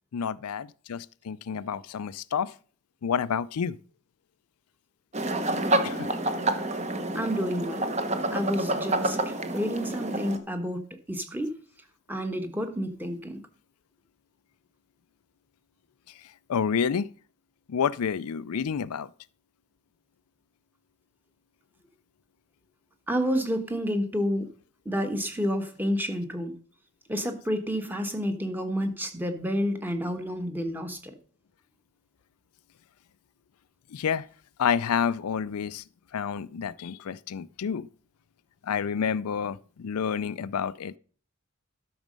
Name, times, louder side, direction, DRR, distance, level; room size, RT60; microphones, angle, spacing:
voice 1, 0.1-2.5 3.0-3.8 5.8-6.1 16.5-17.1 17.7-19.1 33.9-34.3 34.6-35.8 36.1-37.9 38.6-41.0, left 7 dB, 85° left, 0.4 m, -29 dB
sound 1, 5.1-10.4, right 2 dB, 30° right, 1.0 m, -28 dB
voice 2, 7.1-7.8 8.3-9.2 9.5-11.5 12.1-13.4 23.1-24.5 24.8-26.6 27.1-31.1, equal, 10° right, 1.2 m, -29 dB
12.5 x 6.3 x 5.2 m
head